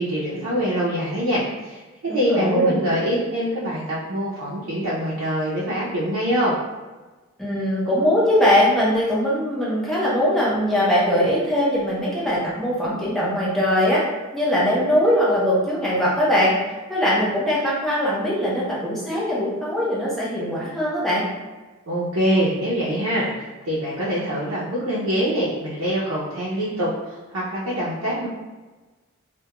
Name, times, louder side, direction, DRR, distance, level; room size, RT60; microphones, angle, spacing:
voice 1, 0.0-6.6 21.9-28.3, equal, 80° right, -8 dB, 0.5 m, -24 dB
voice 2, 2.1-2.8 7.4-14.0 14.3-16.5 16.9-21.2, equal, ahead, -8 dB, 0.6 m, -21 dB
2.3 x 2.1 x 2.9 m, 1.2 s
head